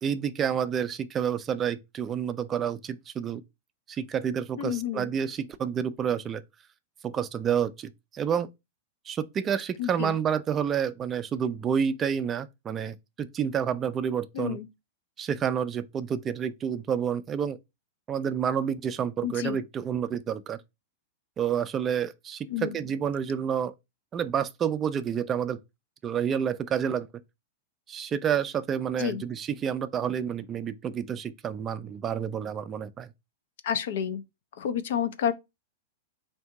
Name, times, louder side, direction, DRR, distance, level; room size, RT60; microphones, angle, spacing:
voice 1, 0.0-3.4 3.9-6.4 7.0-8.5 9.1-14.6 15.2-17.6 18.1-20.6 21.4-23.7 24.1-25.6 26.0-27.1 27.9-33.1, right 8 dB, 25° right, 0.4 m, -29 dB
voice 2, 4.6-5.1 9.8-10.2 14.3-14.7 19.2-19.6 22.5-22.9 29.0-29.2 33.6-34.2 34.6-35.3, left 9 dB, 70° left, 0.5 m, -30 dB
3.5 x 2.7 x 4.6 m
hypercardioid pair, 115°, 0 cm